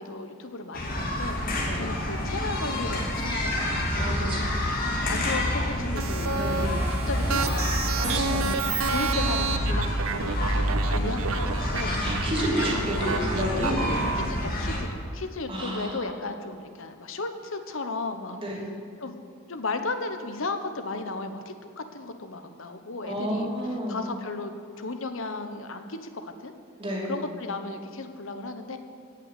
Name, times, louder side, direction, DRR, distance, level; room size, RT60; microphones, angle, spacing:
voice 1, 0.0-4.6 5.1-8.2 8.9-12.0 12.6-12.8 14.2-18.4 19.0-19.2 19.5-23.5 23.9-24.5 24.8-26.5 27.1-28.8, left 3 dB, 70° left, 8 dB, 1.0 m, -35 dB
sound 1, 0.7-14.8, left 1 dB, 40° left, 2.4 m, -28 dB
voice 2, 4.0-4.4 6.3-6.8 8.0-8.6 12.0-14.0 15.5-16.1 18.4-18.6 23.0-24.0 26.8-27.2, equal, 25° right, -3 dB, 2.6 m, -31 dB
sound 2, 6.0-14.3, right 4 dB, 75° right, 0.7 m, -30 dB
16.5 x 6.0 x 8.3 m, 2.3 s
head